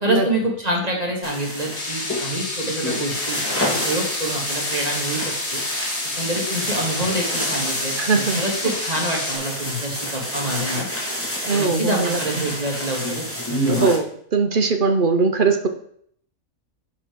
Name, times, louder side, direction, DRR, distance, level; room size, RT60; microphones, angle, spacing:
voice 1, 0.0-5.6 6.2-10.8 11.5-13.2 13.5-13.9, right 1 dB, 25° right, 0 dB, 2.1 m, -26 dB
sound 1, 1.2-14.0, equal, 10° left, 2.0 m, -28 dB
sound 2, 1.7-9.4, left 2 dB, 50° left, 2.0 m, -30 dB
voice 2, 8.0-8.4 11.5-12.5 13.7-14.1 14.3-15.7, right 4 dB, 45° right, 6 dB, 0.8 m, -20 dB
10.5 x 4.2 x 4.6 m, 0.64 s
omnidirectional pair, 1.6 m